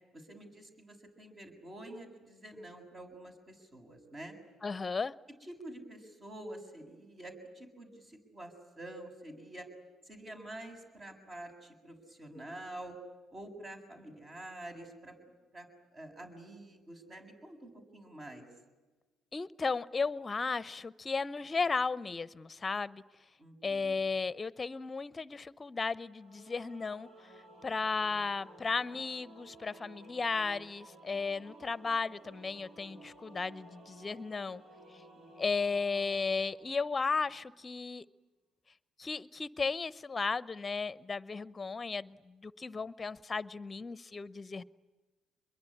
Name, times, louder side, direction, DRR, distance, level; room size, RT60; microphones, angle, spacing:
voice 1, 0.1-4.4 5.4-9.7 10.0-13.0 13.3-15.1 15.5-15.7 15.9-18.4 23.4-24.0 35.2-35.3, right 1 dB, 40° right, 4 dB, 7.1 m, -48 dB
voice 2, 4.6-5.1 19.3-23.0 23.6-27.1 27.6-34.6 35.4-38.0 39.0-44.6, left 4 dB, 30° left, 18 dB, 0.8 m, -35 dB
Singing / Musical instrument, 26.2-37.5, right 1 dB, 55° right, 4.5 m, -56 dB
26.5 x 22.5 x 10.0 m, 1.2 s
hypercardioid pair, 55°, 0 cm